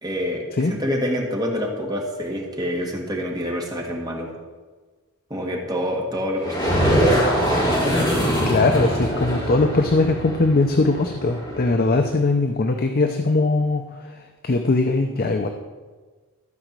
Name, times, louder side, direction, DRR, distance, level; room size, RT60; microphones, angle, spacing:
voice 1, 0.0-4.3 5.3-7.0, equal, 20° right, 0 dB, 1.8 m, -27 dB
sound 1, 6.4-12.0, equal, 20° left, 3.6 m, -23 dB
voice 2, 8.4-15.5, left 3 dB, 40° left, 5 dB, 0.6 m, -20 dB
13.5 x 5.0 x 7.4 m, 1.4 s
head